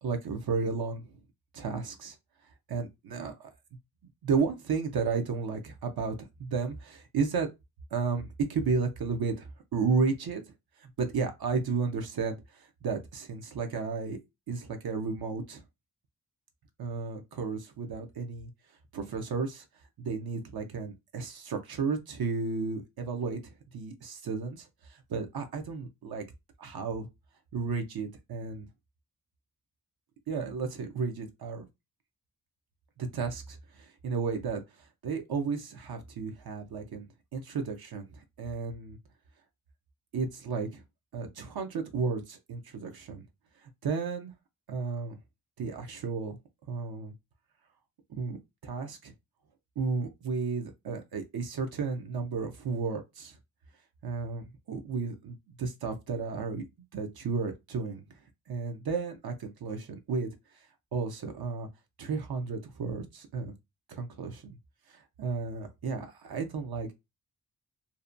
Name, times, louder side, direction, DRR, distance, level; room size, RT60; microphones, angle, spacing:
voice 1, 0.0-1.0 1.5-2.2 2.7-3.5 4.2-6.1 6.4-7.5 7.9-10.4 10.8-14.2 14.5-15.6 16.8-18.5 18.9-19.6 20.0-24.7 25.1-26.2 26.6-27.1 27.5-28.7 30.3-31.7 33.0-34.6 35.0-37.1 37.3-39.0 40.1-40.8 41.1-43.2 43.8-44.3 44.7-45.2 45.6-46.4 46.7-47.1 48.1-48.4 48.6-49.1 49.8-53.4 54.0-58.0 58.5-60.3 60.9-61.7 62.0-63.5 63.9-64.6 64.9-66.9, right 4 dB, 75° right, 0.6 m, -33 dB
2.7 x 2.1 x 2.4 m
cardioid pair, 65°, 37 cm